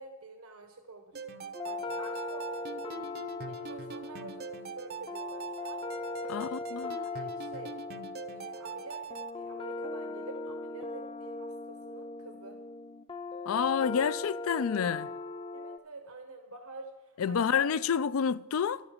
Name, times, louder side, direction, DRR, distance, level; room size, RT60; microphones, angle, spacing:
voice 1, 0.0-3.1 3.5-5.8 6.2-6.8 7.1-7.7 8.3-12.6 15.5-17.6, right 3 dB, 90° right, 1.3 m, -48 dB
sound 1, 1.1-9.3, right 6 dB, 45° right, 0.6 m, -43 dB
sound 2, 1.5-15.8, left 3 dB, 25° left, 0.6 m, -39 dB
voice 2, 6.3-7.0 13.5-15.1 17.2-18.8, left 7 dB, 70° left, 0.4 m, -29 dB
13.0 x 11.0 x 5.1 m
head